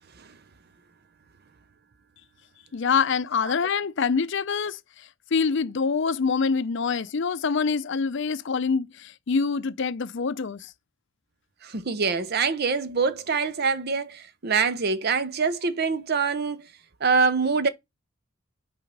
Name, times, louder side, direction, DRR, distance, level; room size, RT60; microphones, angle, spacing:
voice 1, 2.7-4.8 5.3-10.7, left 5 dB, 60° left, 0.5 m, -25 dB
voice 2, 11.6-16.6 17.0-17.7, right 5 dB, 50° right, 0.6 m, -24 dB
8.5 x 4.3 x 5.3 m
head